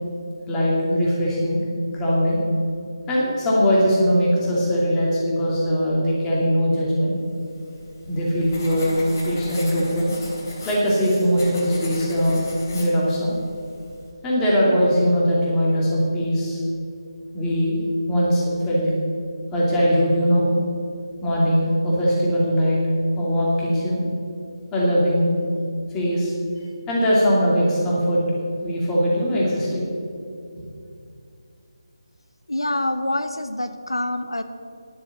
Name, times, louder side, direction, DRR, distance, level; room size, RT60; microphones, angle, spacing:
voice 1, 0.5-1.6 1.9-2.4 3.1-7.2 8.1-9.0 9.2-10.1 10.6-12.4 12.7-13.4 14.2-16.6 17.3-17.8 18.1-18.9 19.5-20.5 21.2-22.8 23.2-24.0 24.7-25.4 25.9-26.3 26.9-28.2 28.6-29.9, equal, 10° left, -6 dB, 2.5 m, -20 dB
Writing, 7.4-14.1, left 2 dB, 45° left, 3.2 m, -39 dB
voice 2, 32.5-34.4, left 1 dB, 85° left, 10 dB, 0.7 m, -26 dB
11.0 x 7.0 x 8.2 m, 2.5 s
figure-of-eight pair, 155°, 2 cm